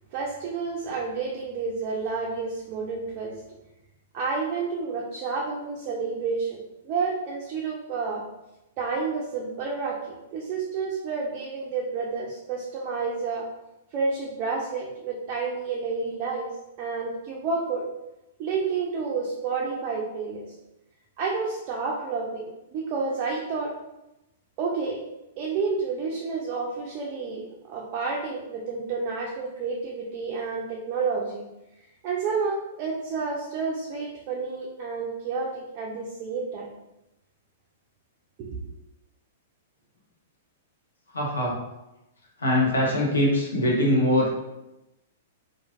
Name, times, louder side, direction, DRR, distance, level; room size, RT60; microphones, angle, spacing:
voice 1, 0.1-3.4 4.1-8.2 8.8-10.0 10.3-13.5 13.9-16.5 16.8-17.8 18.4-20.5 21.2-23.7 24.6-25.0 25.4-31.4 32.0-36.7 38.4-38.6, right 4 dB, 40° right, -2 dB, 0.4 m, -30 dB
voice 2, 41.1-41.6 42.4-44.3, left 1 dB, 75° left, -2 dB, 0.8 m, -22 dB
3.1 x 2.5 x 2.4 m, 0.94 s
figure-of-eight pair, 105°, 0 cm